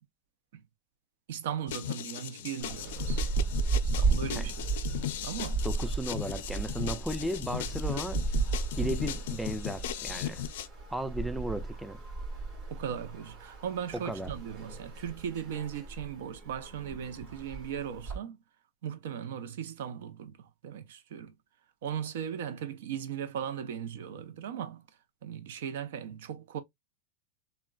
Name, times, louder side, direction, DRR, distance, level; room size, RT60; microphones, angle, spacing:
voice 1, 1.3-3.2 4.0-4.8 5.2-5.6 12.7-18.4 18.8-21.3 21.8-24.8 25.2-26.6, right 8 dB, 75° right, 0.6 m, -38 dB
sound 1, 1.7-10.7, left 12 dB, 70° left, 0.4 m, -37 dB
sound 2, 2.6-18.2, right 4 dB, 40° right, 1.9 m, -34 dB
voice 2, 5.6-8.2 8.8-10.5 10.9-12.0 13.9-14.3, right 1 dB, 5° right, 0.3 m, -35 dB
3.5 x 2.1 x 2.2 m
supercardioid pair, 135°, 0 cm